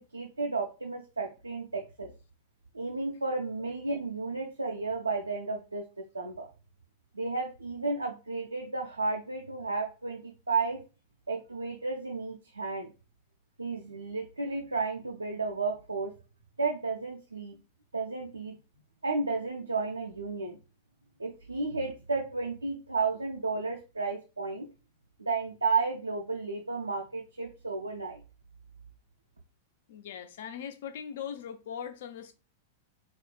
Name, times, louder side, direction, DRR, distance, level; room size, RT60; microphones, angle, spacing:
voice 1, 0.0-2.1 2.7-5.8 6.1-6.5 7.1-10.8 11.3-12.9 13.6-16.1 16.6-17.6 17.9-18.6 19.0-20.6 21.2-24.7 25.2-28.2, right 4 dB, 85° right, 0.3 m, -32 dB
voice 2, 29.9-32.3, left 8 dB, 55° left, 0.3 m, -40 dB
4.2 x 2.1 x 2.2 m
figure-of-eight pair, 95°, 0 cm